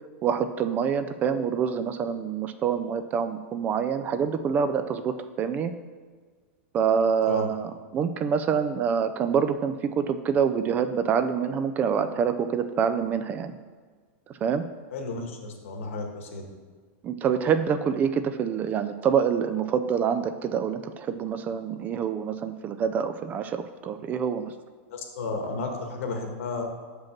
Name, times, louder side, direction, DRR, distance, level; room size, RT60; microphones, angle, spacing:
voice 1, 0.2-5.7 6.7-13.6 14.4-14.6 17.0-24.5, right 7 dB, 25° right, 10 dB, 0.3 m, -26 dB
voice 2, 14.9-16.5 24.9-26.6, left 3 dB, 75° left, 3 dB, 1.6 m, -33 dB
5.8 x 5.2 x 5.9 m, 1.5 s
supercardioid pair, 150°, 7 cm